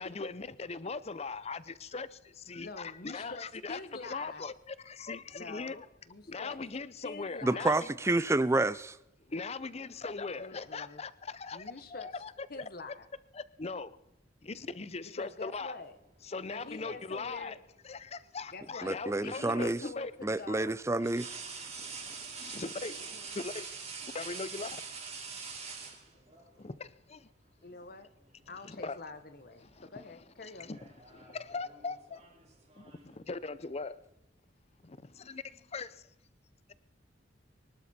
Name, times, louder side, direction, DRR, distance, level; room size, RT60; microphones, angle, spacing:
voice 1, 0.0-2.1 2.5-5.9 6.3-7.9 9.3-13.0 13.3-14.0 14.4-15.8 16.2-17.6 17.8-20.1 21.8-23.7 24.1-24.8 26.6-27.3 28.6-29.0 29.6-30.8 31.1-32.2 32.8-34.0 34.8-36.1, left 4 dB, 35° left, 0.6 m, -40 dB
voice 2, 2.6-4.4 5.3-6.6 7.0-7.8 10.4-11.0 11.5-12.1 12.5-13.0 15.2-16.0 16.5-17.5 18.5-20.9 23.0-23.4 27.6-28.1 28.5-30.7, left 3 dB, 50° left, 1.1 m, -46 dB
voice 3, 7.4-9.0 18.8-19.8 20.2-21.4, right 2 dB, 15° right, 0.5 m, -29 dB
sound 1, 16.7-17.6 19.3-19.5 21.0-26.5 27.7-27.9 28.3-29.1 29.3-29.7 30.6-33.2, right 5 dB, 35° right, 3.2 m, -45 dB
23.5 x 12.5 x 4.3 m
head